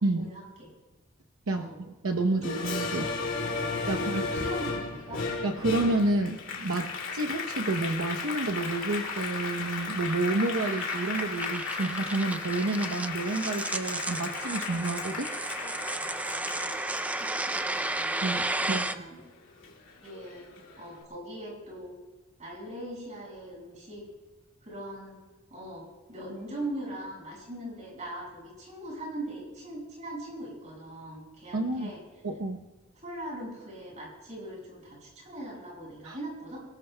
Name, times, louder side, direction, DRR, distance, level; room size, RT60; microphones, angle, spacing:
voice 1, 0.1-0.7 1.5-1.8 2.4-2.5 3.9-5.3 16.5-19.2 20.0-20.4 20.8-21.9 22.4-24.0 24.6-25.2 25.5-32.0 33.0-36.6, right 1 dB, 35° right, -2 dB, 6.0 m, -41 dB
voice 2, 2.0-3.1 3.9-4.2 5.4-15.3 18.2-18.8 31.5-31.9 32.2-32.6 36.0-36.2, right 2 dB, 80° right, 2 dB, 0.8 m, -29 dB
Applause, 2.4-19.2 19.6-20.8, left 4 dB, 60° left, 2.6 m, -35 dB
sound 1, 8.2-18.9, right 2 dB, 5° right, 0.4 m, -34 dB
27.5 x 18.5 x 2.2 m, 1.2 s
head